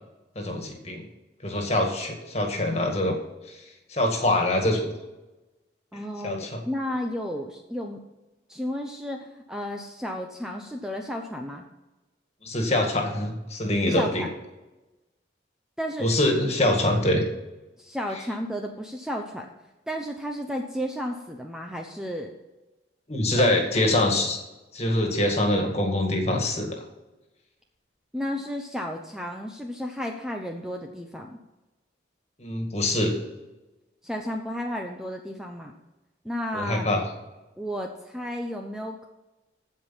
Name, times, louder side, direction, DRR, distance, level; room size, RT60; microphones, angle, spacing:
voice 1, 0.4-1.0 1.4-3.2 3.5-3.6 3.9-4.9 6.2-6.6 12.4-14.2 16.0-17.2 23.1-24.4 24.7-26.8 32.4-33.2 36.5-37.0, left 1 dB, 35° left, 2 dB, 2.0 m, -24 dB
voice 2, 5.9-8.0 8.5-11.6 13.8-14.3 15.8-16.1 17.8-19.5 19.9-22.3 23.4-23.5 28.1-31.4 34.0-35.7 36.2-36.9 37.6-39.1, equal, 5° right, 2 dB, 0.7 m, -33 dB
15.5 x 5.2 x 5.7 m, 1.1 s
head